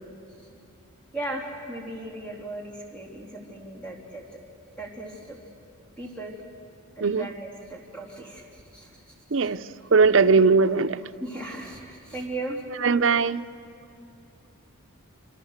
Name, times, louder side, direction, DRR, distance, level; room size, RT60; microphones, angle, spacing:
voice 1, 1.1-4.4 4.8-5.4 6.0-6.4 7.0-9.5 11.2-12.6, right 2 dB, 5° left, -3 dB, 3.4 m, -37 dB
voice 2, 9.3-9.6 9.9-11.0 12.8-13.4, right 4 dB, 60° right, 10 dB, 0.6 m, -19 dB
26.5 x 26.0 x 6.6 m, 2.7 s
head